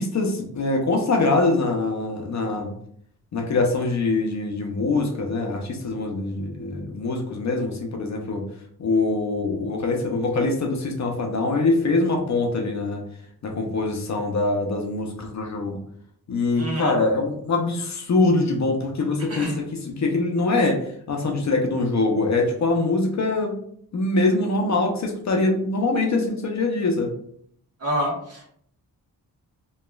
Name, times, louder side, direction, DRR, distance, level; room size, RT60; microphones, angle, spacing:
voice 1, 0.0-2.7 3.3-8.4 8.8-13.0 13.4-15.8 16.3-23.6 23.9-27.1, left 3 dB, 45° left, 2 dB, 0.6 m, -23 dB
voice 2, 16.6-17.0 19.3-19.6 27.8-28.5, equal, 40° right, -2 dB, 1.1 m, -28 dB
2.9 x 2.3 x 2.2 m, 0.64 s
cardioid pair, 65°, 38 cm